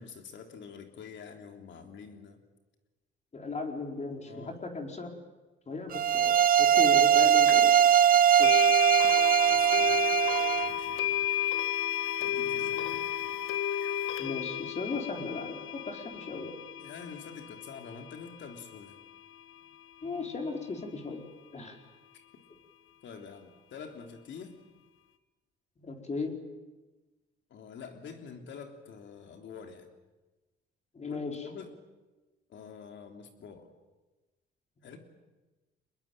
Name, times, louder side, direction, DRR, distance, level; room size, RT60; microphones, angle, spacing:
voice 1, 0.0-2.4 4.2-4.6 9.5-10.2 10.5-11.3 12.2-13.1 16.8-19.0 23.0-24.6 27.5-29.9 31.0-31.7 32.5-33.7 34.8-35.0, left 6 dB, 70° left, 5 dB, 3.4 m, -47 dB
voice 2, 3.3-5.1 5.7-7.8 8.4-8.7 12.6-13.0 14.2-16.6 20.0-21.2 21.5-21.8 25.8-26.4 30.9-31.4, left 3 dB, 35° left, 3 dB, 4.4 m, -37 dB
sound 1, 5.9-10.7, right 9 dB, 45° right, 0.8 m, -21 dB
sound 2, 7.5-7.6 8.4-19.4, left 11 dB, 85° left, 1.7 m, -33 dB
24.0 x 21.0 x 9.1 m, 1.2 s
cardioid pair, 90°, 20 cm